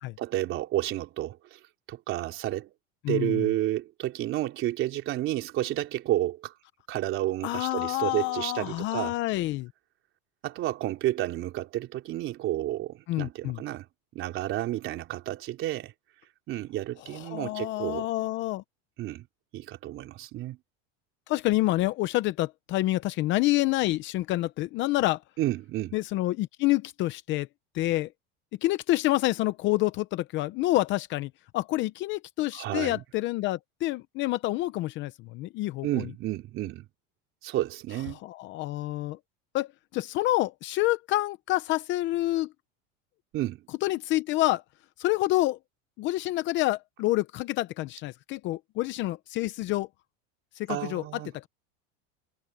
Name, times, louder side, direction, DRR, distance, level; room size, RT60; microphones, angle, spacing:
voice 1, 0.2-1.6 1.9-2.7 3.1-6.5 6.9-9.2 10.4-13.9 14.1-15.9 16.5-18.1 19.0-19.3 19.5-20.6 25.4-26.0 32.5-33.0 35.8-36.9 37.4-38.2 43.3-43.6 50.7-51.3, right 14 dB, 40° right, 3.8 m, -31 dB
voice 2, 3.0-3.5 7.4-9.7 13.1-13.6 17.1-18.6 21.3-25.2 25.9-27.5 27.7-28.1 28.6-36.0 38.2-39.2 39.5-42.5 43.8-44.6 45.0-45.6 46.0-49.9 50.6-51.0 51.3-51.5, left 17 dB, 35° left, 0.7 m, -28 dB
cardioid pair, 165°, 33 cm